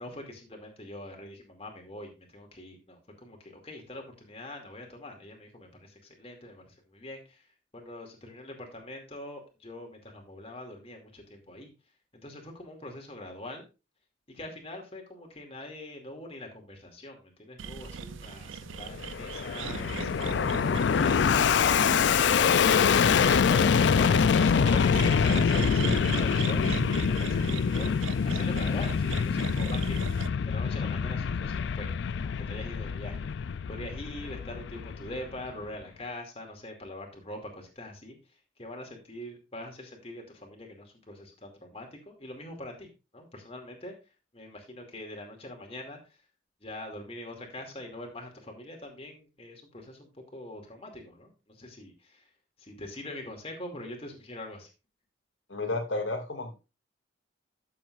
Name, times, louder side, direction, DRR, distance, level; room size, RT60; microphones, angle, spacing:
voice 1, 0.0-7.5 7.7-11.7 12.2-13.6 14.3-20.3 23.2-31.9 32.2-38.2 38.6-43.9 44.3-46.0 46.6-52.3 52.6-54.7, left 1 dB, 30° left, 2 dB, 2.4 m, -43 dB
sound 1, 17.6-30.3, right 6 dB, 90° right, 0.5 m, -38 dB
Fixed-wing aircraft airplane, 18.9-35.5, left 6 dB, 65° left, 0.4 m, -25 dB
voice 2, 55.5-56.5, left 2 dB, 80° left, 3 dB, 2.3 m, -31 dB
12.0 x 7.6 x 2.5 m, 0.29 s
head